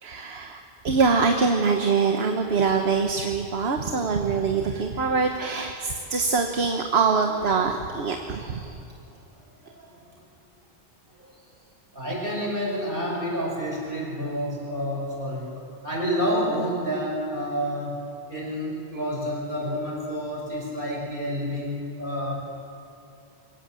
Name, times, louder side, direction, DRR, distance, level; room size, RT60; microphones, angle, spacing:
voice 1, 0.0-8.8, right 5 dB, 70° right, 4 dB, 1.4 m, -24 dB
voice 2, 9.6-10.0 11.2-11.3 11.9-15.5 15.8-18.0 18.3-22.3, equal, 55° right, -3 dB, 6.2 m, -29 dB
23.0 x 17.5 x 7.5 m, 2.6 s
omnidirectional pair, 1.1 m